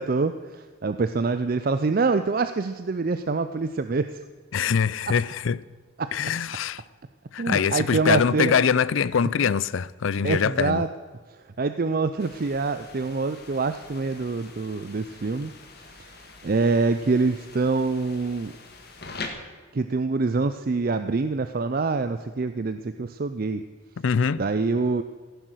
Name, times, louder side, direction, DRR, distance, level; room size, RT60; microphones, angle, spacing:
voice 1, 0.0-4.1 5.1-5.2 6.0-6.1 7.4-8.5 10.2-10.9 11.6-15.5 16.4-18.5 19.7-23.6 24.4-25.0, right 4 dB, 45° right, 0.5 m, -25 dB
voice 2, 4.5-5.6 6.1-6.8 7.3-10.8 24.0-24.4, left 6 dB, 70° left, 0.4 m, -23 dB
sound 1, 12.2-19.3, left 4 dB, 50° left, 1.7 m, -44 dB
15.0 x 10.5 x 6.3 m
head